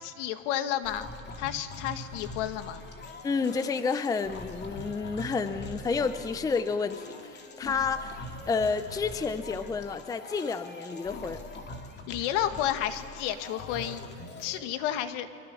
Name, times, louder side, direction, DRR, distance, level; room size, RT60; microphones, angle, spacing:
voice 1, 0.0-1.1 1.4-2.8 12.1-14.0 14.4-15.3, left 11 dB, 70° left, 9 dB, 1.8 m, -31 dB
sound 1, 0.8-14.6, left 2 dB, 30° left, 2.6 m, -43 dB
voice 2, 3.2-8.2 8.5-11.4, left 4 dB, 10° left, 11 dB, 0.6 m, -30 dB
29.5 x 24.0 x 7.0 m, 2.5 s
supercardioid pair, 140°, 37 cm